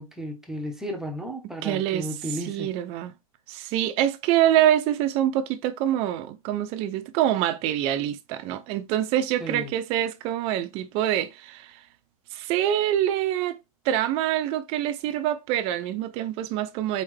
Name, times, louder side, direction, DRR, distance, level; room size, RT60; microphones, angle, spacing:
voice 1, 0.0-2.7 9.4-9.7, equal, 5° right, 0.8 m, -34 dB
voice 2, 1.6-2.1 2.5-3.1 3.5-11.8 12.3-13.6 13.8-17.0, right 12 dB, 30° right, 0.6 m, -25 dB
4.3 x 3.5 x 3.2 m
hypercardioid pair, 145°, 19 cm